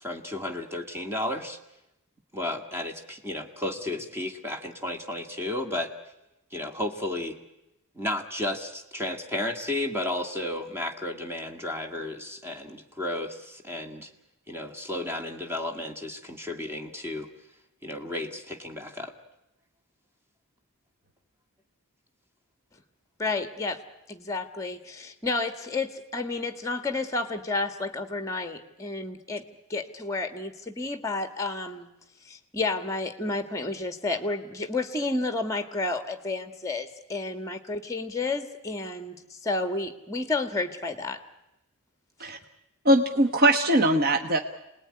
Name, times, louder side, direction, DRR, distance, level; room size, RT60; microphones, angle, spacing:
voice 1, 0.0-1.6 2.3-5.9 6.5-7.4 8.0-14.1 14.5-17.3 17.8-19.1, left 1 dB, 10° right, 4 dB, 2.0 m, -33 dB
voice 2, 23.2-23.8 24.1-29.4 29.7-31.9 32.2-41.2, left 3 dB, 15° left, 9 dB, 1.7 m, -31 dB
voice 3, 42.8-44.4, right 1 dB, 45° right, 6 dB, 1.2 m, -21 dB
27.5 x 19.5 x 9.8 m, 0.94 s
head